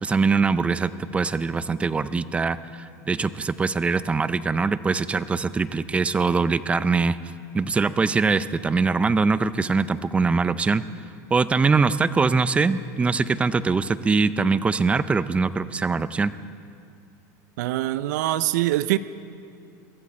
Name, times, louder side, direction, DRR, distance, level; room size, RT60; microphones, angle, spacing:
voice 1, 0.0-7.2 7.5-10.8 11.3-16.3, right 4 dB, 15° right, 15 dB, 0.4 m, -22 dB
voice 2, 17.6-19.0, right 16 dB, 80° right, 15 dB, 0.4 m, -23 dB
23.0 x 14.0 x 4.3 m, 2.4 s
supercardioid pair, 135°, 9 cm